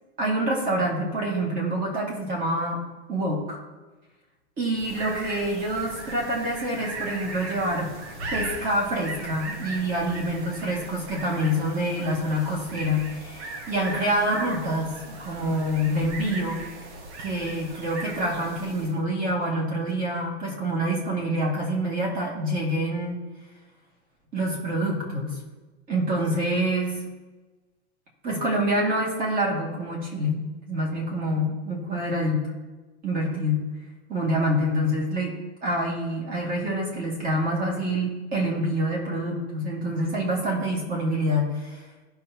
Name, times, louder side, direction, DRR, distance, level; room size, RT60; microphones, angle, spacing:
voice 1, 0.2-2.8 3.1-3.6 4.6-7.9 8.3-16.6 17.2-23.2 24.3-25.4 25.9-27.0 28.2-32.4 33.0-33.6 34.1-35.4 35.6-41.8, equal, 25° right, -2 dB, 2.2 m, -26 dB
sound 1, 4.7-19.0, right 2 dB, 75° right, 1.7 m, -38 dB
15.5 x 5.8 x 2.9 m, 1.2 s
supercardioid pair, 165°, 34 cm